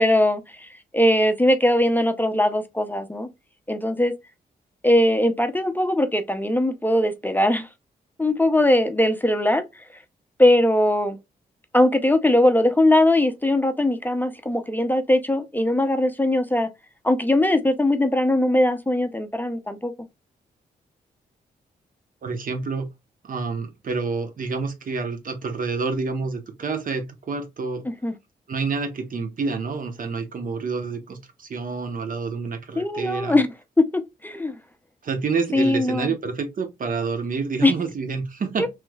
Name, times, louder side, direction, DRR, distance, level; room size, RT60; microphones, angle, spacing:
voice 1, 0.0-3.3 3.7-4.1 4.8-7.7 8.2-9.6 10.4-11.2 11.7-16.7 17.0-19.9 28.0-28.1 32.8-33.5 33.8-34.6 35.5-36.1 37.6-37.7, left 1 dB, 10° left, 0.5 m, -20 dB
voice 2, 22.2-22.9 23.2-27.8 28.5-33.4 35.0-38.7, right 4 dB, 55° right, 0.9 m, -28 dB
3.2 x 3.0 x 2.2 m
cardioid pair, 70°, 17 cm